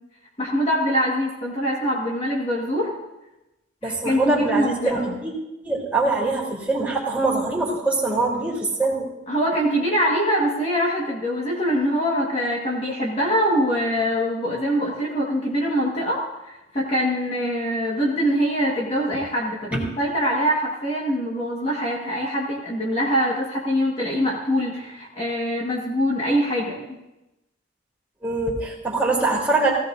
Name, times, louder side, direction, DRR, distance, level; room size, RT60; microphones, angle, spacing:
voice 1, 0.4-2.9 3.8-5.0 9.3-27.0, equal, 30° left, -3 dB, 1.7 m, -23 dB
voice 2, 3.8-5.3 5.6-9.1 28.2-29.7, right 2 dB, 10° right, -5 dB, 3.4 m, -23 dB
17.0 x 16.5 x 2.7 m, 0.97 s
head